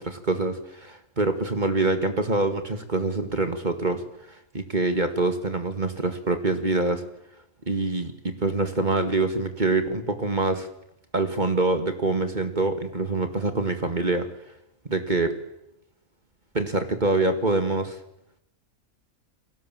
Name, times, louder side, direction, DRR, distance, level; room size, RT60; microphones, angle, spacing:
voice 1, 0.0-4.0 4.5-7.0 7.7-10.7 11.1-14.3 14.9-15.4 16.5-18.0, right 2 dB, 30° right, 8 dB, 2.1 m, -25 dB
29.5 x 21.0 x 7.5 m, 0.82 s
omnidirectional pair, 1.5 m